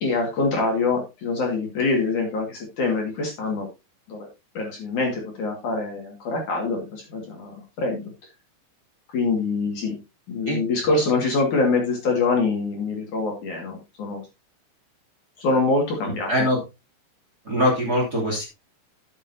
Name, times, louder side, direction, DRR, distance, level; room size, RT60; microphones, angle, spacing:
voice 1, 0.0-3.7 4.1-4.3 4.5-8.1 9.1-10.0 10.3-14.2 15.4-16.3, left 3 dB, 55° left, 1 dB, 3.0 m, -24 dB
voice 2, 16.0-16.6 17.4-18.5, equal, 25° right, -2 dB, 2.7 m, -23 dB
12.5 x 8.0 x 2.7 m, 0.26 s
omnidirectional pair, 4.9 m